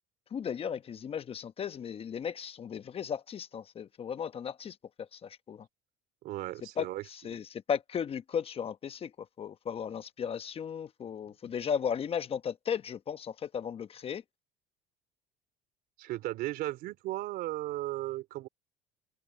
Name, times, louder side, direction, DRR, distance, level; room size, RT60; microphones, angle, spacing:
voice 1, 0.3-5.6 6.8-6.9 7.2-9.1 9.4-14.2, left 7 dB, 35° left, 1.0 m, -35 dB
voice 2, 6.2-7.4 16.0-18.5, right 16 dB, 65° right, 3.5 m, -36 dB
open air
supercardioid pair, 105°, 17 cm